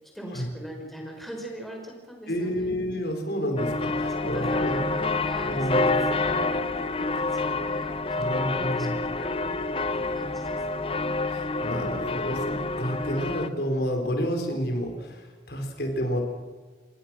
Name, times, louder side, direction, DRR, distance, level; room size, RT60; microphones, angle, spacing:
voice 1, 0.1-2.7 4.1-10.9, equal, ahead, 1 dB, 5.2 m, -40 dB
voice 2, 2.3-4.8 5.5-6.0 8.2-8.9 11.3-16.2, equal, 60° left, 4 dB, 4.7 m, -30 dB
sound 1, 3.6-13.5, left 3 dB, 30° left, 0.8 m, -28 dB
27.5 x 21.0 x 6.3 m, 1.3 s
head